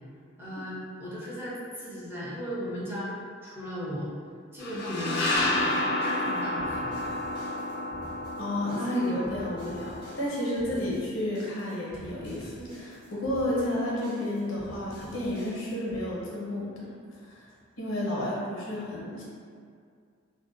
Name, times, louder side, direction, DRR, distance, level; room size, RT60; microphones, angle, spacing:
voice 1, 0.4-3.2 3.4-4.1 4.5-7.1 9.0-9.2 10.7-10.9, equal, 10° right, -9 dB, 0.5 m, -36 dB
sound 1, 4.6-10.3, left 1 dB, 55° left, 0.3 m, -30 dB
sound 2, 5.4-16.0, equal, 60° right, 1.1 m, -49 dB
voice 2, 8.4-17.4 17.8-19.2, left 1 dB, 90° left, -5 dB, 0.7 m, -31 dB
2.5 x 2.1 x 2.5 m, 2.2 s
head